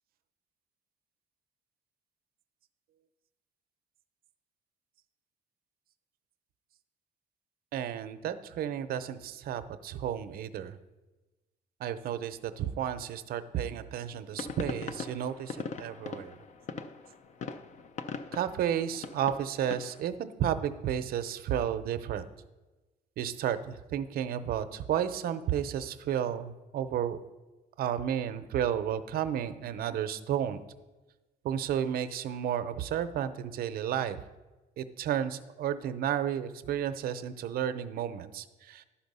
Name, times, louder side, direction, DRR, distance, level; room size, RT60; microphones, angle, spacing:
voice 1, 7.7-10.8 11.8-16.4 18.3-22.2 23.2-27.2 27.8-30.6 31.4-34.2 34.8-38.8, right 9 dB, 60° right, 11 dB, 0.6 m, -32 dB
sound 1, 14.3-20.0, left 5 dB, 45° left, 0.5 m, -41 dB
11.5 x 4.3 x 5.4 m, 1.1 s
cardioid pair, 110°, 17 cm